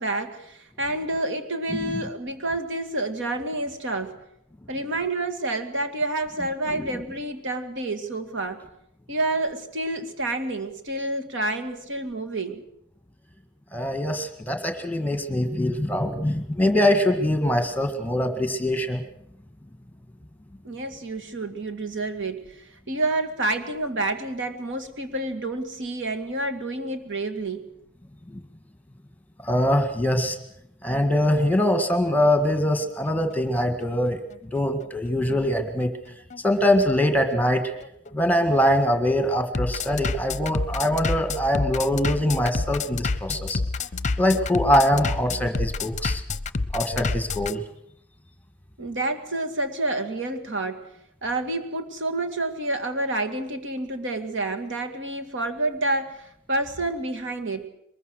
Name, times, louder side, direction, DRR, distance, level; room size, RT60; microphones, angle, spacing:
voice 1, 0.0-4.2 4.7-8.6 9.1-12.6 20.6-27.7 48.8-50.9 51.2-57.7, right 2 dB, 60° right, 7 dB, 2.2 m, -29 dB
voice 2, 13.7-19.0 29.4-30.4 30.8-34.2 34.5-35.9 36.4-37.7 38.1-43.6 44.2-46.2 46.7-47.6, left 1 dB, 10° left, 6 dB, 1.9 m, -23 dB
Bass drum, 31.6-47.5, left 3 dB, 35° left, 0.8 m, -29 dB
23.0 x 21.0 x 6.5 m, 0.75 s
head